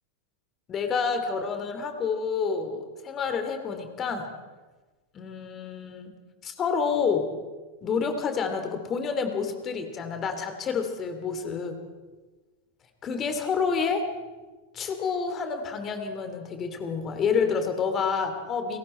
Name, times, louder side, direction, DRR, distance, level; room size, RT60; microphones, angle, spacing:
voice 1, 0.7-4.3 5.1-6.1 6.4-7.3 7.8-11.8 13.0-14.1 14.7-18.8, left 5 dB, 25° left, 6 dB, 2.9 m, -28 dB
29.5 x 22.0 x 4.5 m, 1.3 s
figure-of-eight pair, 90°, 0 cm